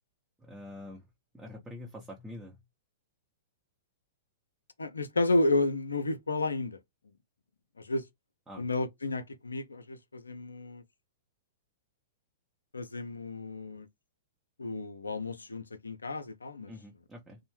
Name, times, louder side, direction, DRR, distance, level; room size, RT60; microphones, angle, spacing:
voice 1, 0.4-1.1 1.3-2.6 8.5-8.6 16.7-17.4, left 1 dB, 10° right, 0.7 m, -45 dB
voice 2, 4.8-6.8 7.8-8.0 8.6-10.8 12.7-13.9 14.6-16.7, left 2 dB, 85° left, 0.4 m, -31 dB
2.5 x 2.0 x 3.0 m
figure-of-eight pair, 110°, 0 cm